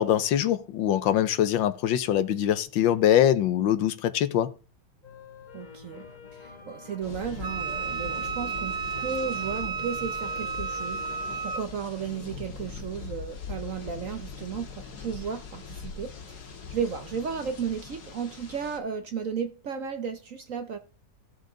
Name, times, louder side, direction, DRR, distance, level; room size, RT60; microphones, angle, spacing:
voice 1, 0.0-4.5, left 11 dB, 80° left, 1.5 m, -23 dB
sound 1, 5.0-11.4, left 5 dB, 25° left, 1.4 m, -48 dB
voice 2, 5.5-6.0 6.3-11.0 11.4-14.7 15.0-20.8, right 6 dB, 55° right, 1.0 m, -34 dB
sound 2, 7.0-18.8, left 5 dB, 55° left, 1.8 m, -41 dB
Wind instrument woodwind instrument, 7.4-11.7, right 5 dB, 75° right, 1.9 m, -32 dB
15.0 x 6.5 x 3.9 m
omnidirectional pair, 2.1 m